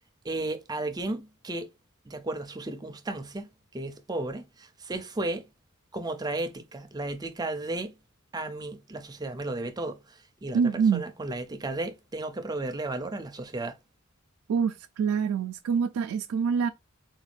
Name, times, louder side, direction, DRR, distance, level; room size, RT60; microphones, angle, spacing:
voice 1, 0.2-1.7 2.1-3.5 3.7-5.4 5.9-7.9 8.3-10.0 10.4-13.7, right 2 dB, 20° right, 0.4 m, -34 dB
voice 2, 10.5-11.0 14.5-16.7, right 6 dB, 80° right, 0.3 m, -25 dB
3.8 x 2.3 x 3.2 m
head